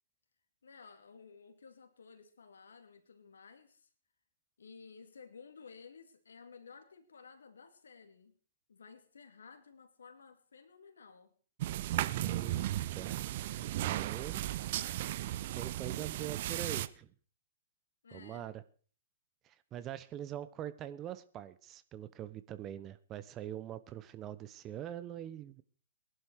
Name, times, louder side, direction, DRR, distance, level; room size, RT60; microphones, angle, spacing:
voice 1, 0.6-3.9 4.6-8.4 8.7-11.3 18.0-18.5, left 5 dB, 75° left, 2.5 m, -55 dB
sound 1, 11.6-16.9, right 14 dB, 50° right, 0.7 m, -35 dB
voice 2, 12.1-12.6 12.9-13.3 13.6-14.9 15.5-17.1 18.1-18.6 19.4-25.6, right 11 dB, 25° right, 0.9 m, -43 dB
20.0 x 11.0 x 4.8 m
figure-of-eight pair, 115°, 0 cm